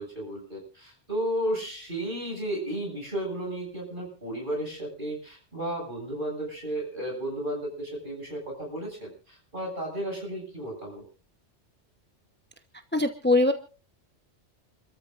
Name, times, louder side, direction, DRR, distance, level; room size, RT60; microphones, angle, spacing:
voice 1, 0.0-11.0, right 1 dB, 45° right, -1 dB, 8.4 m, -33 dB
voice 2, 12.9-13.5, left 2 dB, 10° left, 7 dB, 1.0 m, -21 dB
29.5 x 14.0 x 2.6 m, 0.35 s
omnidirectional pair, 1.2 m